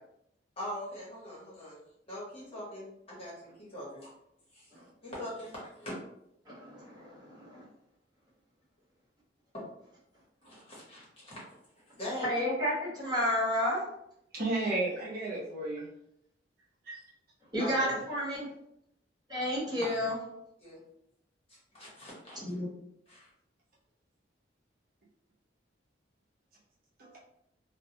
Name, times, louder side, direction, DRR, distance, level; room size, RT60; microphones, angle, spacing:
voice 1, 0.6-1.8 2.1-3.3 3.6-4.1 4.5-4.6 5.0-6.0 9.5-9.6 10.4-11.4 12.0-12.3 17.6-17.7 19.8-19.9 20.6-20.8 21.5-22.4 23.1-23.3, left 1 dB, 30° left, 1.0 m, -42 dB
voice 2, 6.4-7.6 12.2-13.8 17.5-18.5 19.3-20.2 22.4-22.7, equal, 20° right, 1.1 m, -31 dB
voice 3, 14.3-15.9 16.8-17.0 17.8-18.0 27.0-27.2, right 2 dB, 55° right, 0.8 m, -33 dB
2.2 x 2.1 x 2.8 m
head